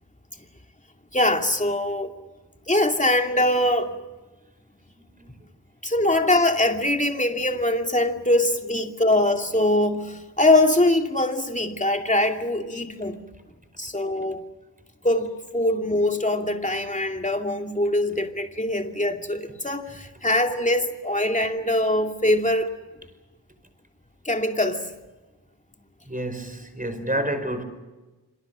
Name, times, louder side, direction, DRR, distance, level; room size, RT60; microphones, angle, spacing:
voice 1, 1.1-2.1 2.7-3.9 5.8-13.2 13.8-14.4 15.0-15.3 15.5-22.7 24.2-24.9, left 1 dB, 20° left, 2.6 m, -22 dB
voice 2, 4.9-5.4 26.0-27.6, right 1 dB, 20° right, 5.0 m, -29 dB
27.5 x 26.5 x 6.3 m
wide cardioid pair, 55°, 39 cm